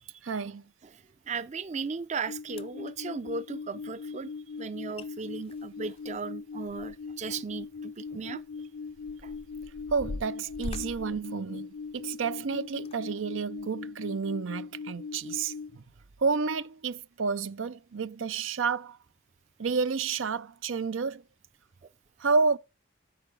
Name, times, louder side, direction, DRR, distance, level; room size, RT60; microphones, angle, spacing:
voice 1, 0.2-0.6 8.1-8.3 9.9-15.8 16.2-19.0 19.6-21.2 22.2-22.6, right 5 dB, 90° right, 0.6 m, -30 dB
voice 2, 1.3-4.3 4.6-8.4 9.2-9.3, right 5 dB, 35° right, 0.5 m, -36 dB
sound 1, 2.0-2.1 2.5-2.9 4.6-4.7 5.0-5.1 5.4-7.2 7.6-7.7 8.4-12.2 12.7-13.0 13.6-13.7, left 2 dB, 30° left, 0.4 m, -42 dB
sound 2, 2.3-15.8, left 5 dB, 90° left, 0.7 m, -40 dB
8.4 x 4.9 x 6.8 m
head